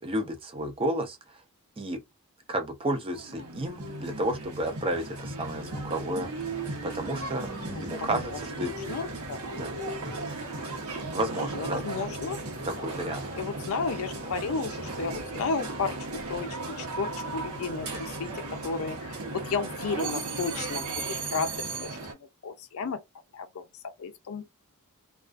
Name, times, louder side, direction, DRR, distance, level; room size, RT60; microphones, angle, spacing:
voice 1, 0.0-1.2 1.8-2.0 2.5-6.3 6.8-8.7 9.5-9.7 11.1-11.8 12.6-13.2, right 1 dB, 25° right, 0.5 m, -31 dB
sound 1, 3.1-22.1, right 2 dB, 70° right, 0.9 m, -36 dB
voice 2, 7.6-8.2 8.9-9.6 11.4-12.4 12.8-13.0 13.4-16.0 16.3-18.3 18.6-19.2 19.4-20.9 21.3-21.9 22.4-23.0 23.3-23.6 24.0-24.5, left 4 dB, 65° left, 0.5 m, -33 dB
2.4 x 2.3 x 2.4 m
head